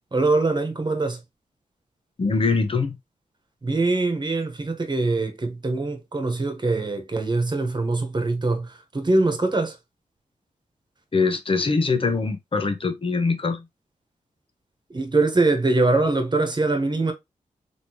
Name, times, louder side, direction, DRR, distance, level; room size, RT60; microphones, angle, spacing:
voice 1, 0.1-1.2 3.6-9.7 14.9-17.1, right 2 dB, 35° right, 1.4 m, -23 dB
voice 2, 2.2-3.0 11.1-13.6, left 4 dB, 40° left, 1.0 m, -23 dB
3.8 x 3.5 x 3.1 m
cardioid pair, 65°, 14 cm